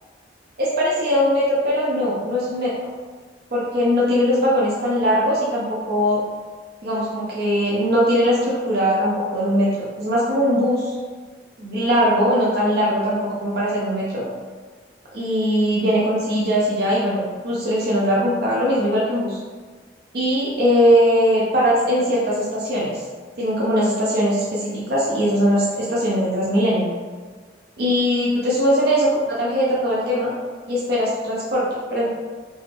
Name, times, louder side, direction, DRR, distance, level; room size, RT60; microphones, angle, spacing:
voice 1, 0.6-2.7 3.5-6.2 6.8-10.9 11.6-14.2 15.1-19.4 20.1-23.0 23.4-26.9 27.8-29.1 29.4-30.3 30.7-32.1, equal, 55° right, -6 dB, 0.6 m, -20 dB
3.8 x 2.4 x 3.3 m, 1.4 s
head